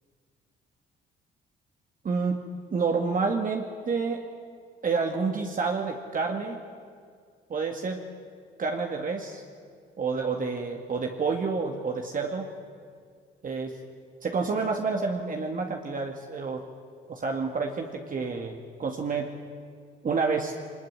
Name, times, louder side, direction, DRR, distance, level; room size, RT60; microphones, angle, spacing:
voice 1, 2.0-2.4 2.7-4.2 4.8-6.6 7.5-8.0 8.6-9.4 10.0-12.5 13.4-13.7 14.2-16.6 17.1-19.3 20.0-20.5, right 4 dB, 45° right, 2 dB, 2.2 m, -29 dB
23.0 x 20.5 x 9.6 m, 2.1 s
cardioid pair, 90°, 20 cm